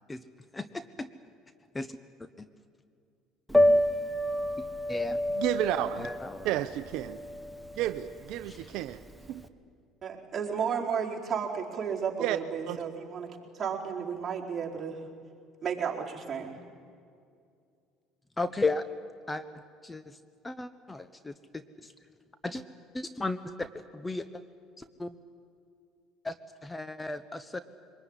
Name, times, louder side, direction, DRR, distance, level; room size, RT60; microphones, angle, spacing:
voice 1, 0.5-1.1 1.7-1.9 2.4-2.5 4.6-5.2 6.0-6.5 8.5-8.7 18.4-18.8 19.3-19.4 19.8-20.2 20.4-21.9 22.4-22.6 22.9-24.4 24.8-25.2 26.2-26.3 26.6-27.6, left 3 dB, 15° left, 12 dB, 1.0 m, -35 dB
Piano, 3.5-9.4, left 1 dB, ahead, 1.3 m, -28 dB
voice 2, 5.4-6.1 6.4-7.2 7.8-9.0 9.3-9.5 12.2-12.4 12.7-12.8, right 14 dB, 70° right, 10 dB, 0.7 m, -31 dB
voice 3, 10.0-15.0 15.6-16.6, right 7 dB, 35° right, -2 dB, 4.5 m, -33 dB
23.5 x 21.0 x 9.8 m, 2.4 s
supercardioid pair, 85°, 0 cm